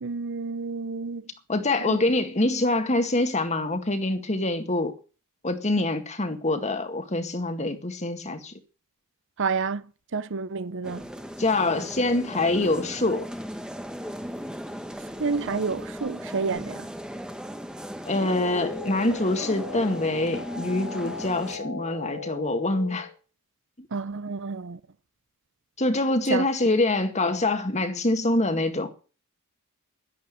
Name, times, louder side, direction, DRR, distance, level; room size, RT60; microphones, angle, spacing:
voice 1, 0.0-1.2 1.9-2.0 9.4-9.8 10.1-11.0 15.2-16.9 23.9-24.8 26.3-26.5, right 4 dB, 55° right, 0.7 m, -29 dB
voice 2, 1.5-4.9 5.4-8.5 11.4-13.3 18.1-23.1 23.8-23.9 25.8-28.9, left 2 dB, 30° left, 2.0 m, -25 dB
sound 1, 10.8-21.6, equal, 5° right, 1.2 m, -37 dB
sound 2, 18.2-23.2, left 5 dB, 80° left, 4.4 m, -38 dB
11.5 x 11.5 x 7.7 m
head